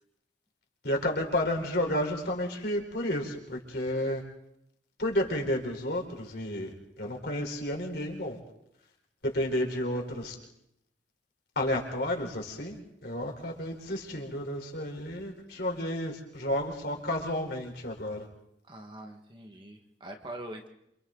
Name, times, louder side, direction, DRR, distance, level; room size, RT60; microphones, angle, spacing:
voice 1, 0.8-4.2 5.0-8.4 9.2-10.4 11.6-18.3, left 1 dB, 60° left, 1 dB, 4.2 m, -31 dB
voice 2, 18.6-20.7, right 1 dB, 25° right, 3 dB, 1.7 m, -43 dB
28.0 x 27.0 x 4.0 m, 0.79 s
head